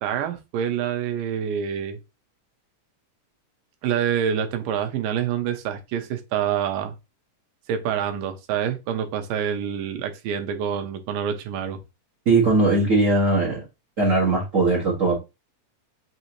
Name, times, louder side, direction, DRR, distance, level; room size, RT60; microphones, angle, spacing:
voice 1, 0.0-2.0 3.8-6.9 7.7-11.8, right 8 dB, 90° right, 2.4 m, -26 dB
voice 2, 12.2-13.6 14.0-15.2, right 3 dB, 70° right, 0.7 m, -19 dB
5.9 x 2.7 x 2.9 m
omnidirectional pair, 3.8 m